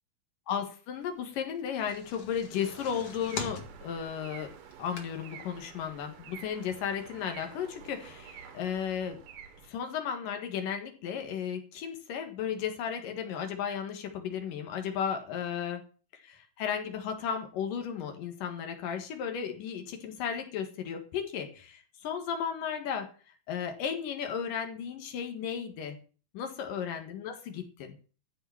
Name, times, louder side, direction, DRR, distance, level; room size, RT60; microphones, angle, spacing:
voice 1, 0.5-9.2 9.6-15.8 16.1-23.1 23.5-26.0 26.3-28.0, left 8 dB, 80° left, 5 dB, 3.3 m, -34 dB
sound 1, 1.5-5.5 5.9-6.0 6.3-6.4, left 4 dB, 50° left, 2.9 m, -42 dB
sound 2, 2.6-9.7, right 7 dB, 75° right, 3.0 m, -50 dB
14.0 x 5.1 x 8.9 m, 0.39 s
omnidirectional pair, 3.8 m